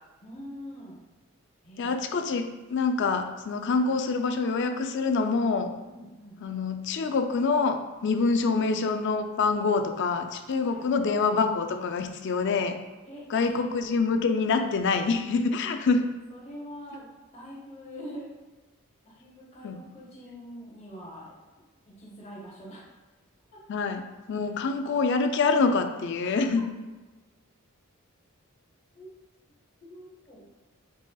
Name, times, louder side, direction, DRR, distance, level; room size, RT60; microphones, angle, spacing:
voice 1, 0.2-1.0 1.6-2.3 5.9-6.4 10.6-10.8 13.0-13.6 15.6-15.7 16.3-18.3 19.0-21.4 21.9-22.9 23.5-23.6 26.2-26.4 28.9-29.1 29.8-30.4, equal, 30° left, -3 dB, 0.8 m, -44 dB
voice 2, 1.8-5.7 6.4-12.8 13.3-16.0 19.6-19.8 23.7-24.0 24.3-26.7, left 4 dB, 55° left, 6 dB, 0.4 m, -26 dB
4.7 x 4.2 x 2.3 m, 1.2 s
head